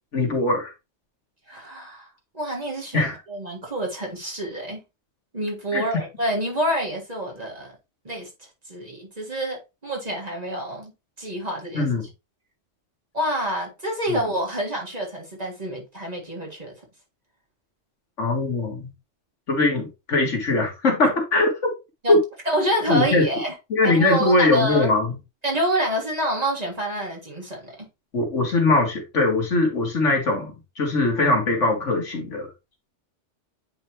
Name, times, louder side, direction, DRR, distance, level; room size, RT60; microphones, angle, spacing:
voice 1, 0.1-0.7 2.9-3.1 5.7-5.8 11.7-12.0 14.1-14.2 18.2-18.9 19.5-21.7 22.1-22.2 22.9-23.3 23.7-25.1 28.1-32.5, left 2 dB, 85° left, 2.2 m, -21 dB
voice 2, 1.5-2.1 2.3-4.8 5.3-7.8 8.0-10.9 11.2-11.9 13.1-16.7 22.0-22.2 22.5-23.5 23.8-24.9 25.4-27.9, right 1 dB, 35° right, 1.8 m, -27 dB
9.3 x 3.4 x 2.9 m
omnidirectional pair, 1.2 m